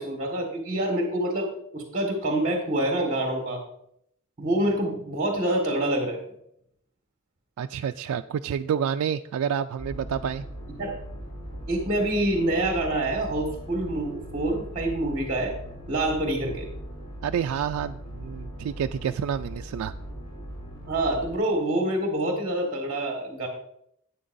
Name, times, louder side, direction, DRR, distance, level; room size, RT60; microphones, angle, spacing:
voice 1, 0.0-3.6 4.4-6.2 10.8-11.0 11.7-15.6 15.9-16.7 20.9-23.5, right 1 dB, 35° right, 0 dB, 1.6 m, -26 dB
voice 2, 7.6-10.4 17.2-19.9, right 8 dB, 90° right, 7 dB, 0.3 m, -29 dB
sound 1, 9.8-21.4, equal, 25° left, 3.2 m, -39 dB
12.5 x 9.2 x 2.6 m, 0.73 s
head